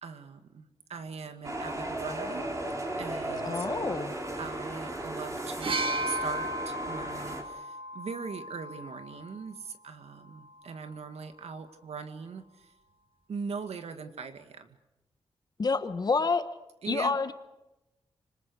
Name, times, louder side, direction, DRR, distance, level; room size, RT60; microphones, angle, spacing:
voice 1, 0.0-2.5 3.0-4.1 4.4-12.7 13.3-14.8 16.8-17.2, right 5 dB, 80° right, 8 dB, 2.1 m, -41 dB
sound 1, 1.4-7.4, right 1 dB, 30° right, 4.2 m, -35 dB
voice 2, 3.4-4.1 15.6-16.4 16.9-17.3, left 4 dB, 40° left, 10 dB, 1.3 m, -28 dB
sound 2, 5.6-9.4 10.5-10.6, right 1 dB, 60° right, 1.7 m, -35 dB
26.0 x 26.0 x 6.4 m, 0.96 s
wide cardioid pair, 140°, 10 cm